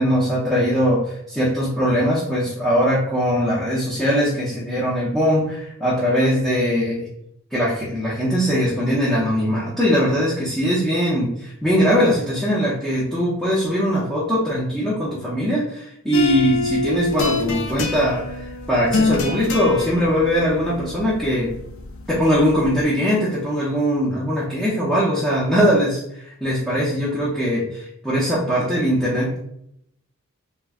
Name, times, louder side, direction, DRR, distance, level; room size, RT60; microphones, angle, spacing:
voice 1, 0.0-7.1 7.5-21.5 22.1-29.4, equal, ahead, -9 dB, 0.5 m, -21 dB
sound 1, 16.1-22.8, left 3 dB, 80° left, 0.5 m, -26 dB
2.4 x 2.1 x 3.5 m, 0.73 s
head